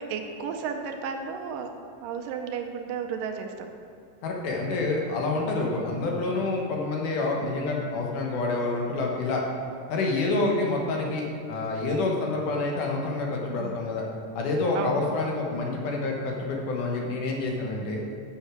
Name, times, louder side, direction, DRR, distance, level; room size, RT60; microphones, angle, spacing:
voice 1, 0.0-1.8 2.0-3.7 5.7-5.9 10.3-10.5 13.5-13.9 14.7-15.0 15.3-15.4, right 6 dB, 85° right, 4 dB, 2.3 m, -34 dB
voice 2, 4.2-9.4 9.9-14.1 14.4-18.0, left 3 dB, 70° left, 0 dB, 2.5 m, -28 dB
8.1 x 6.3 x 6.3 m, 2.2 s
omnidirectional pair, 3.9 m